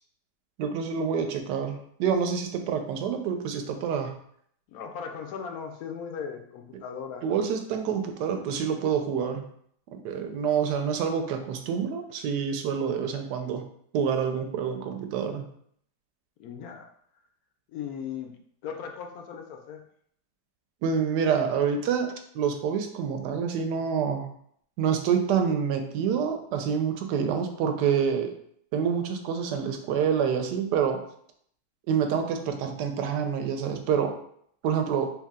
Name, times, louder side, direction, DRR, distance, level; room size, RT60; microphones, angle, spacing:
voice 1, 0.6-4.2 7.2-9.4 9.9-13.6 13.9-15.4 20.8-24.3 24.8-28.3 28.7-31.0 31.9-34.1 34.6-35.1, right 7 dB, 85° right, 6 dB, 1.2 m, -27 dB
voice 2, 4.7-7.3 16.4-16.9 17.7-19.8, left 7 dB, 70° left, 4 dB, 1.0 m, -38 dB
3.3 x 2.7 x 3.6 m, 0.66 s
omnidirectional pair, 1.8 m